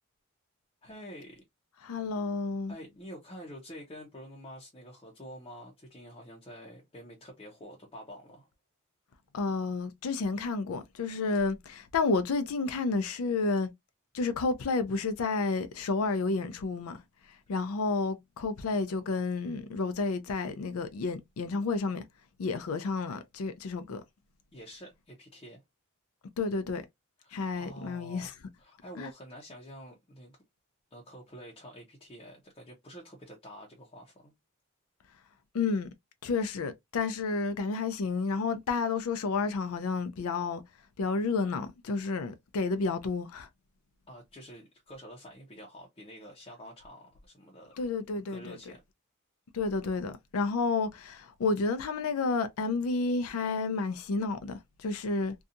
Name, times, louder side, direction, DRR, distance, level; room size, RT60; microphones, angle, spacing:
voice 1, 0.8-1.4 2.7-8.5 24.5-25.6 27.2-30.4 30.9-34.3 44.1-47.7 48.3-48.8, equal, 25° left, 0.7 m, -48 dB
voice 2, 1.8-2.7 9.3-13.7 14.1-17.0 17.3-22.0 22.4-24.0 26.4-26.8 27.3-28.3 29.0-29.1 35.5-35.9 36.2-40.6 41.0-43.5 47.8-48.6 49.5-55.3, left 4 dB, 70° left, 0.4 m, -31 dB
2.6 x 2.3 x 2.5 m
head